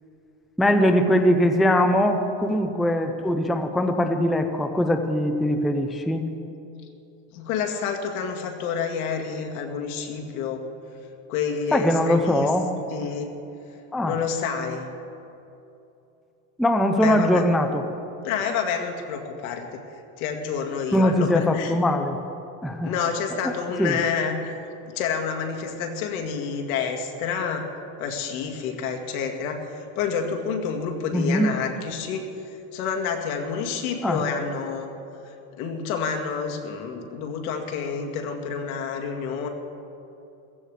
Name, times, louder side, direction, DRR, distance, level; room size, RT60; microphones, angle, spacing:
voice 1, 0.6-6.2 11.7-12.7 13.9-14.1 16.6-17.8 20.9-22.2 22.6-22.9 23.4-23.5 23.8-24.0 31.1-31.5 34.0-34.2, equal, ahead, 6 dB, 0.4 m, -21 dB
voice 2, 7.3-10.7 11.3-12.5 12.9-13.3 14.0-14.9 17.0-17.4 18.2-21.7 22.8-24.5 24.9-27.7 28.0-29.6 30.0-32.3 32.7-34.9 35.2-39.5, left 6 dB, 80° left, 3 dB, 2.2 m, -28 dB
16.0 x 14.5 x 4.9 m, 2.8 s
supercardioid pair, 145°, 43 cm